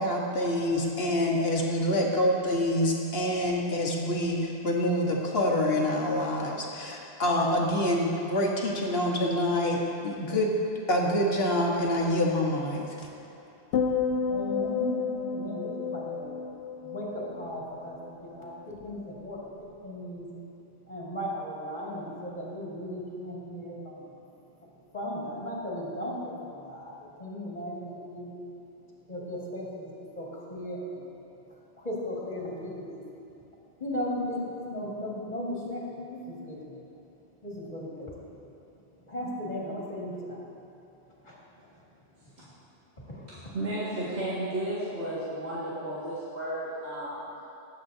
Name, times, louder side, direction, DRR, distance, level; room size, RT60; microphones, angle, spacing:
voice 1, 0.0-10.5 10.9-13.1, left 1 dB, 65° left, -1 dB, 1.5 m, -26 dB
sound 1, 13.7-18.1 18.4-18.8, left 6 dB, 85° left, 0.8 m, -31 dB
voice 2, 14.3-16.3 16.8-20.3 20.9-24.1 24.9-28.3 29.1-29.8 30.1-31.0 31.5-33.0 33.8-34.4 34.7-36.9 37.4-38.3 39.1-40.5 41.2-41.7 43.0-43.3, left 1 dB, 40° left, -6 dB, 2.1 m, -37 dB
voice 3, 43.3-47.2, right 1 dB, 75° right, -11 dB, 2.2 m, -33 dB
20.0 x 8.1 x 2.7 m, 2.9 s
omnidirectional pair, 1.1 m